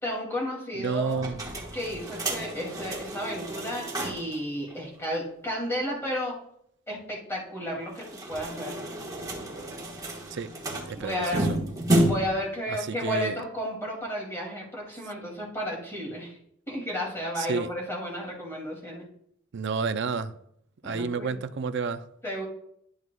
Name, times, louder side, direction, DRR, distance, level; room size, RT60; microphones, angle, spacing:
voice 1, 0.0-1.3 1.7-6.4 6.9-8.8 10.9-11.5 12.0-16.4 16.7-19.0 20.8-21.3 22.2-22.5, equal, 10° left, 2.5 m, -33 dB
voice 2, 0.8-1.4 10.3-10.5 10.9-11.6 12.7-13.4 17.4-17.7 19.5-20.4 20.8-22.0, right 4 dB, 60° right, 0.5 m, -30 dB
sound 1, 1.1-4.4 4.7-4.8 5.0-5.1 7.9-12.4, right 1 dB, 20° right, 1.4 m, -30 dB
11.0 x 8.1 x 2.3 m
head